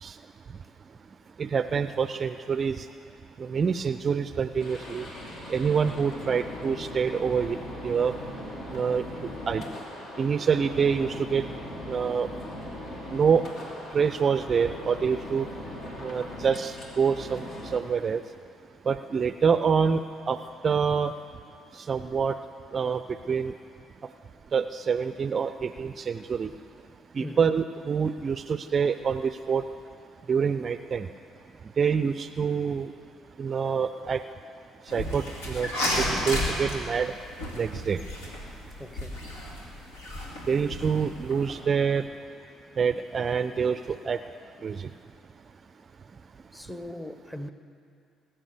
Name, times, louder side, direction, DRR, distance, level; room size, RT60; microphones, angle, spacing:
voice 1, 1.4-2.8 3.4-5.0 5.5-7.6 7.8-8.1 8.7-9.0 9.5-9.6 10.2-11.4 11.9-12.3 13.1-13.4 13.9-15.5 16.0-18.2 18.9-20.0 20.3-20.4 20.6-21.1 21.9-22.4 22.7-23.0 23.3-23.5 24.5-26.5 27.2-29.6 30.3-31.1 31.8-32.9 33.4-34.2 34.9-35.7 36.0-37.1 37.6-38.0 40.5-42.0 42.8-44.2 44.6-44.9, right 6 dB, 40° right, 0.4 m, -26 dB
sound 1, 4.6-17.8, left 1 dB, 55° left, 2.6 m, -39 dB
voice 2, 27.2-27.5 38.8-39.2 46.5-47.5, left 1 dB, 10° left, 1.2 m, -39 dB
sound 2, 34.9-41.5, left 1 dB, 75° left, 2.3 m, -32 dB
20.0 x 8.9 x 6.8 m
figure-of-eight pair, 50°, 0 cm